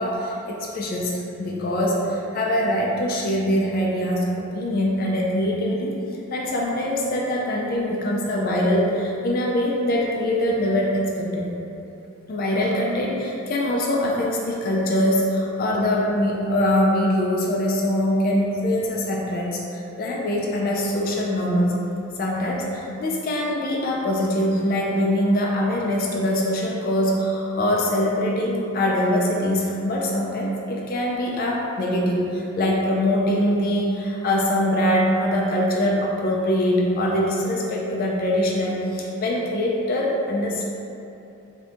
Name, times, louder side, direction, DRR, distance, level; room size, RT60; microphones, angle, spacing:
voice 1, 0.0-5.9 6.3-11.5 12.3-21.7 22.2-40.7, left 1 dB, 40° left, -3 dB, 0.3 m, -23 dB
2.6 x 2.5 x 3.3 m, 2.8 s
head